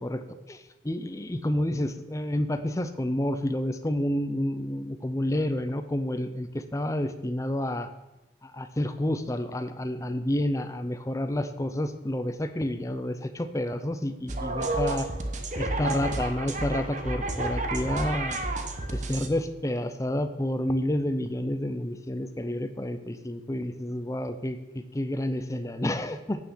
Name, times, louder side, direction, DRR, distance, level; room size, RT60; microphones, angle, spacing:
voice 1, 0.0-7.9 8.4-15.1 15.5-18.4 18.9-26.5, left 1 dB, 15° left, 10 dB, 0.6 m, -29 dB
sound 1, 14.3-19.3, right 2 dB, 40° right, 0.9 m, -30 dB
8.5 x 6.6 x 6.2 m, 0.96 s
head